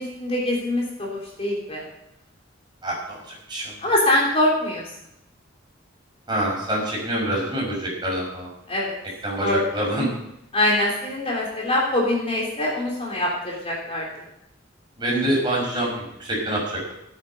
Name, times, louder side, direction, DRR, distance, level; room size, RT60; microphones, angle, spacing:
voice 1, 0.0-1.8 3.8-4.8 8.7-9.0 9.4-9.6 10.5-14.1, left 1 dB, 30° left, -3 dB, 3.5 m, -23 dB
voice 2, 2.8-3.2 3.5-3.7 6.3-8.5 9.2-10.1 15.0-15.9 16.2-16.6, right 1 dB, 25° right, -3 dB, 5.8 m, -25 dB
17.0 x 8.9 x 5.6 m, 0.80 s
head